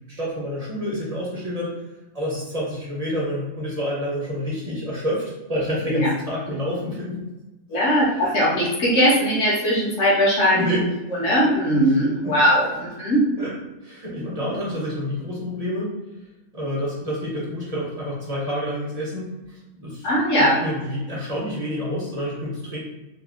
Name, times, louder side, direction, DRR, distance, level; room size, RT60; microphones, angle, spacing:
voice 1, 0.2-1.7 2.1-5.2 5.5-7.2 7.7-7.8 10.5-10.8 12.2-12.4 13.4-13.5 13.8-15.9 16.5-19.3 19.8-20.1 20.4-22.8, equal, 35° right, -6 dB, 0.6 m, -28 dB
voice 2, 7.7-10.6 11.2-13.2 20.0-20.6, equal, 60° left, -6 dB, 1.3 m, -19 dB
3.9 x 2.0 x 2.4 m, 1.0 s
omnidirectional pair, 1.5 m